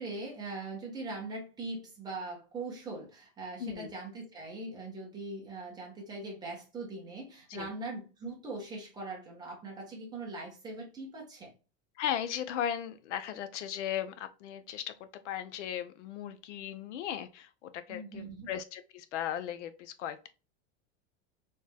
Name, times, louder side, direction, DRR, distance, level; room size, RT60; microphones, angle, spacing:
voice 1, 0.0-11.5 17.9-18.5, right 2 dB, 10° right, 1.2 m, -41 dB
voice 2, 3.6-3.9 7.5-7.7 12.0-20.3, left 10 dB, 85° left, 0.8 m, -37 dB
4.3 x 3.3 x 2.2 m
supercardioid pair, 170°, 35 cm